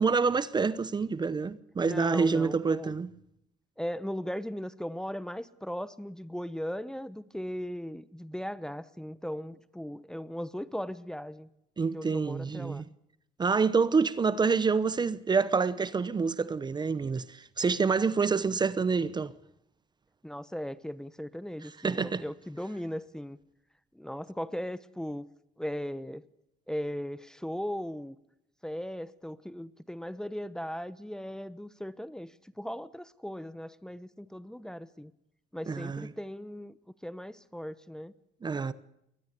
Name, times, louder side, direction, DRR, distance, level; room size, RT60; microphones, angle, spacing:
voice 1, 0.0-3.1 11.8-12.9 13.4-19.3 21.8-22.2 35.7-36.1 38.4-38.7, right 5 dB, 25° right, 0.9 m, -27 dB
voice 2, 1.8-2.9 3.8-11.5 11.9-12.8 20.2-23.4 23.9-25.3 25.6-26.3 26.7-28.2 28.6-35.1 35.5-36.7 37.0-38.1, equal, 5° left, 0.9 m, -38 dB
22.5 x 19.0 x 6.8 m
cardioid pair, 110°, 17 cm